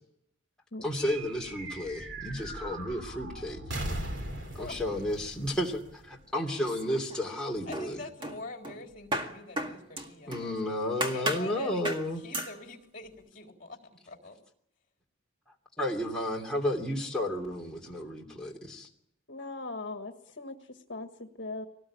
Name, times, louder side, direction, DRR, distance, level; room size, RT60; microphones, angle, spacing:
voice 1, 0.8-3.6 4.5-8.0 10.3-12.2 15.8-18.9, left 1 dB, 5° left, 2.8 m, -32 dB
sound 1, 1.0-6.7, right 1 dB, 60° right, 3.2 m, -40 dB
sound 2, 6.6-7.4 7.7-10.5 11.0-11.5 11.8-12.1 12.3-12.6, right 1 dB, 25° right, 1.9 m, -35 dB
voice 2, 7.6-14.4, left 3 dB, 40° left, 3.8 m, -45 dB
voice 3, 19.3-21.7, left 2 dB, 60° left, 1.7 m, -40 dB
23.5 x 19.0 x 8.7 m
head